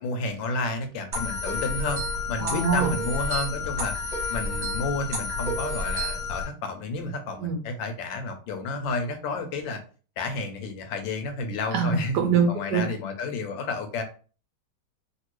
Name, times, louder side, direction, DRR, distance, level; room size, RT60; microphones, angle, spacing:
voice 1, 0.0-2.0 2.3-4.0 4.3-9.8 10.2-12.2 12.5-14.0, left 3 dB, 75° left, 7 dB, 1.3 m, -31 dB
sound 1, 1.1-6.4, left 2 dB, 50° right, 1.3 m, -30 dB
voice 2, 2.4-2.9 7.4-7.6 11.7-12.9, right 6 dB, 70° right, 3 dB, 1.1 m, -24 dB
3.3 x 2.5 x 3.0 m, 0.38 s
omnidirectional pair, 2.3 m